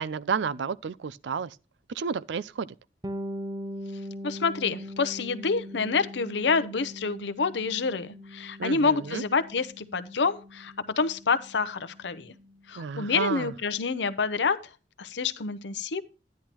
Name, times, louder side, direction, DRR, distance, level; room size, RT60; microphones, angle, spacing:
voice 1, 0.0-1.5 1.9-2.7 8.6-9.2 12.8-13.5, right 6 dB, 80° right, 0.4 m, -31 dB
Bass guitar, 3.0-12.6, equal, 20° right, 0.6 m, -41 dB
voice 2, 4.2-12.3 12.7-14.6 15.0-16.0, left 4 dB, 80° left, 0.7 m, -27 dB
10.5 x 10.5 x 3.0 m
head